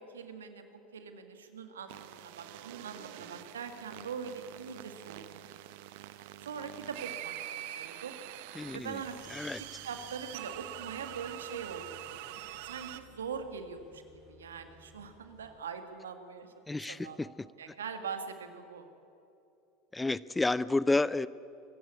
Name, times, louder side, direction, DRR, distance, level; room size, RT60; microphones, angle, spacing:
voice 1, 0.0-5.5 6.4-8.2 8.7-12.1 12.6-14.0 14.3-17.2 17.6-18.9, right 6 dB, 75° right, 8 dB, 1.9 m, -42 dB
sound 1, 1.9-13.0, right 14 dB, 60° right, 0.9 m, -45 dB
sound 2, 8.6-15.6, left 4 dB, 60° left, 7.2 m, -60 dB
voice 2, 8.6-9.0 9.3-9.6 16.7-17.3 19.9-21.3, left 2 dB, 10° left, 19 dB, 0.5 m, -30 dB
24.5 x 15.5 x 8.4 m, 2.8 s
figure-of-eight pair, 75°, 0 cm